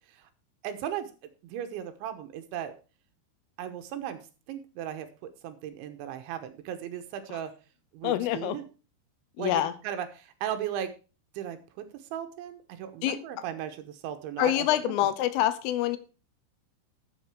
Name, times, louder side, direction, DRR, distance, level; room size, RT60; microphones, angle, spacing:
voice 1, 0.6-1.1 1.4-2.7 3.6-4.2 4.5-5.1 5.4-7.5 7.9-8.6 9.4-10.9 11.3-11.9 12.1-15.1, right 10 dB, 75° right, 8 dB, 3.3 m, -36 dB
voice 2, 8.0-8.6 9.4-9.7 13.0-13.2 14.4-16.0, left 12 dB, 80° left, 14 dB, 3.5 m, -26 dB
12.5 x 7.7 x 4.9 m, 0.33 s
omnidirectional pair, 5.7 m